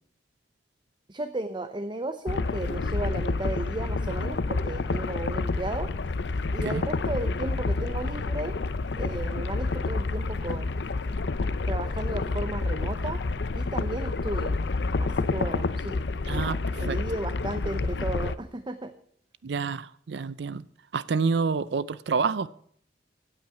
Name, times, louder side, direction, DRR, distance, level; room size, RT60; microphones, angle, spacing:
voice 1, 1.1-5.9 6.5-8.6 9.0-10.8 11.7-13.2 13.5-14.6 15.0-18.9, right 2 dB, 25° right, 0.7 m, -34 dB
sound 1, 2.3-18.4, left 3 dB, 70° left, 0.6 m, -29 dB
voice 2, 16.3-16.6 16.9-17.0 19.4-20.6 20.9-22.5, right 5 dB, 70° right, 0.5 m, -28 dB
16.0 x 8.9 x 5.8 m
head